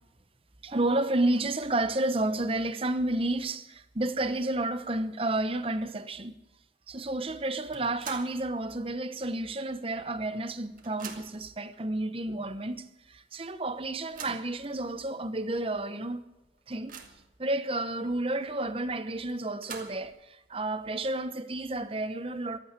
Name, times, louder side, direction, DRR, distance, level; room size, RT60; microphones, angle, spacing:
voice 1, 0.6-6.3 6.9-16.2 16.7-17.0 17.4-22.6, right 2 dB, 30° right, 1.0 m, -31 dB
sound 1, 7.7-8.5 8.9-9.0 10.0-10.1 10.4-11.5 12.3-12.4 12.8-12.9 13.8-14.5 15.2-15.3 15.7-15.8 16.3-17.3 19.3-20.2, right 6 dB, 45° right, 2.1 m, -45 dB
15.0 x 12.0 x 7.5 m
head